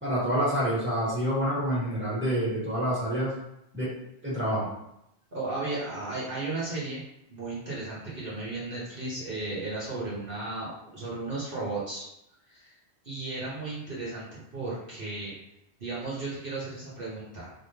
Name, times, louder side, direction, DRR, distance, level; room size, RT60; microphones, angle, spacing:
voice 1, 0.0-3.3 3.7-3.9 4.2-4.7, equal, 10° right, -8 dB, 1.7 m, -27 dB
voice 2, 5.3-7.0 7.3-12.0 12.5-12.7 13.0-15.3 15.8-17.5, right 2 dB, 55° right, -7 dB, 1.3 m, -35 dB
4.5 x 3.5 x 2.8 m, 0.81 s
omnidirectional pair, 1.1 m